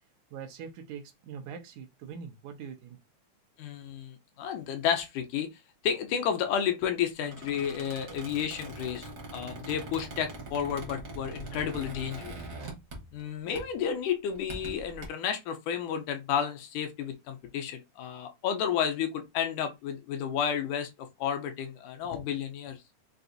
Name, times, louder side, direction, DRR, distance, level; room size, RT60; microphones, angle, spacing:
voice 1, 0.3-3.0, right 7 dB, 85° right, 2.2 m, -43 dB
voice 2, 3.6-5.5 5.8-12.4 13.1-20.9 21.2-22.8, left 8 dB, 85° left, 2.2 m, -31 dB
Squeak, 7.2-13.3 13.5-13.8 14.3-15.0, right 2 dB, 50° right, 1.0 m, -42 dB
5.8 x 2.5 x 2.6 m
omnidirectional pair, 3.5 m